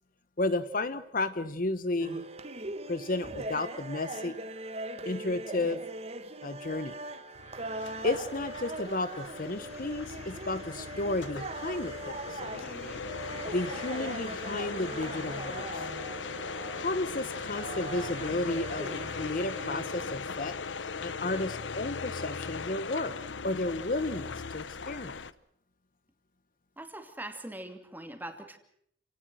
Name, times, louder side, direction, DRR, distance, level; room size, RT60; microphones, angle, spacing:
voice 1, 0.4-2.3 2.9-4.4 5.0-5.8 6.4-6.9 8.0-12.5 13.5-15.9 16.8-20.5 21.0-23.1 23.4-25.2, left 2 dB, 50° left, 12 dB, 1.0 m, -33 dB
sound 1, 2.0-20.1, right 2 dB, 35° right, 1.3 m, -41 dB
sound 2, 7.3-25.3, left 5 dB, 90° left, 0.9 m, -39 dB
voice 2, 26.8-28.6, right 1 dB, 10° right, 6 dB, 2.5 m, -42 dB
29.5 x 18.0 x 6.3 m, 0.70 s
head